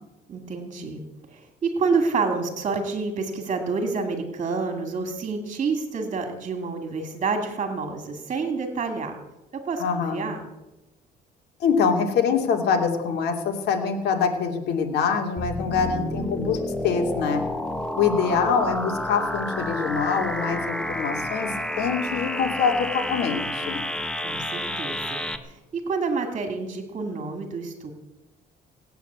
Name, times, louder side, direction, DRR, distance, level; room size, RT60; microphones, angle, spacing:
voice 1, 0.3-1.0 1.3-9.2 9.6-10.4 24.2-27.9, right 4 dB, 40° right, 5 dB, 2.5 m, -28 dB
voice 2, 9.8-10.2 11.6-17.4 18.0-23.8, left 6 dB, 75° left, 3 dB, 3.0 m, -24 dB
sound 1, 15.4-25.4, left 1 dB, 5° left, 1.4 m, -30 dB
19.0 x 9.3 x 8.2 m, 1.0 s
cardioid pair, 110°, 17 cm